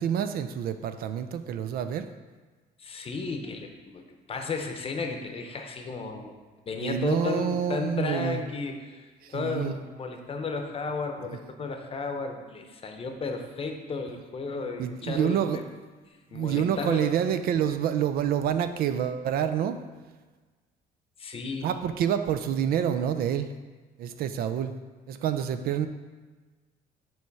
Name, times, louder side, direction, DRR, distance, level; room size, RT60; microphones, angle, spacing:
voice 1, 0.0-2.1 6.8-8.4 9.2-9.8 14.8-15.6 16.3-19.8 21.6-23.5 24.0-24.7 25.1-25.9, right 9 dB, 65° right, 10 dB, 0.4 m, -27 dB
voice 2, 2.8-6.3 6.7-15.6 16.1-17.2 21.2-21.7, left 4 dB, 35° left, 4 dB, 0.8 m, -34 dB
7.0 x 3.2 x 4.7 m, 1.3 s
cardioid pair, 110°, 17 cm